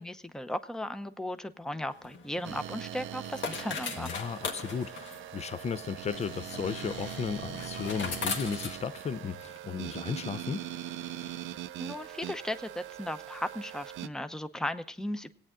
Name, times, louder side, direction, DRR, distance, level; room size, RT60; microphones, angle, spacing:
voice 1, 0.0-4.1 11.8-15.3, left 1 dB, 5° left, 0.7 m, -36 dB
sound 1, 1.9-9.6, left 5 dB, 70° left, 1.6 m, -40 dB
sound 2, 2.4-14.1, right 12 dB, 85° right, 0.6 m, -41 dB
voice 2, 4.0-10.7, left 6 dB, 35° left, 0.5 m, -35 dB
18.5 x 9.0 x 3.7 m
cardioid pair, 90°, 20 cm